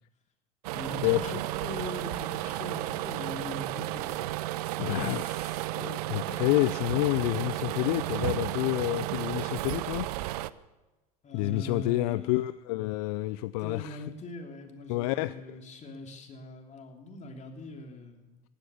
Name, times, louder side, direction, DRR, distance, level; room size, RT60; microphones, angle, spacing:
sound 1, 0.6-10.5, right 16 dB, 75° right, 0.6 m, -33 dB
voice 1, 0.7-4.3 11.2-12.4 13.6-18.4, left 2 dB, 35° left, 3 dB, 3.3 m, -41 dB
voice 2, 4.8-10.1 11.3-14.0 14.9-15.6, left 19 dB, 70° left, 15 dB, 0.5 m, -29 dB
16.0 x 12.0 x 7.1 m, 1.1 s
hypercardioid pair, 80°, 20 cm